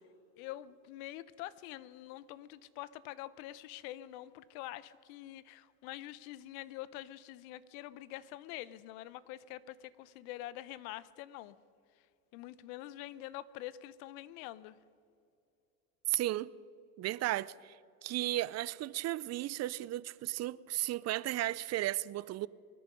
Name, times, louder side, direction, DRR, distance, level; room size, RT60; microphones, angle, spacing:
voice 1, 0.4-11.5 12.3-14.8, left 15 dB, 70° left, 0.8 m, -46 dB
voice 2, 16.1-16.5 17.0-17.8 18.0-22.5, right 15 dB, 35° right, 0.5 m, -34 dB
23.5 x 10.0 x 5.2 m
supercardioid pair, 90°, 45 cm